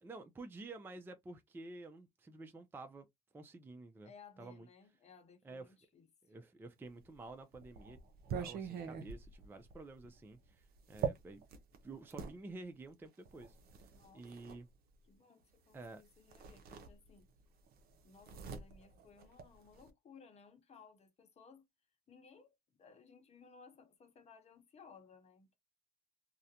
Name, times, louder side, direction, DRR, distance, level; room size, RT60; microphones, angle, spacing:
voice 1, 0.0-3.1 3.3-4.1 4.4-4.7 5.4-5.7 6.2-8.0 8.4-11.4 11.8-13.9 14.1-14.7 15.7-16.0, right 2 dB, 10° right, 0.4 m, -51 dB
voice 2, 4.0-6.1 13.9-14.3 15.1-17.3 18.0-21.7 22.1-25.6, left 5 dB, 40° left, 0.9 m, -60 dB
sound 1, 7.0-12.4 13.3-14.6 15.8-16.0 16.3-17.4 17.7-19.9, right 6 dB, 65° right, 0.6 m, -44 dB
2.4 x 2.1 x 2.7 m
cardioid pair, 110°, 17 cm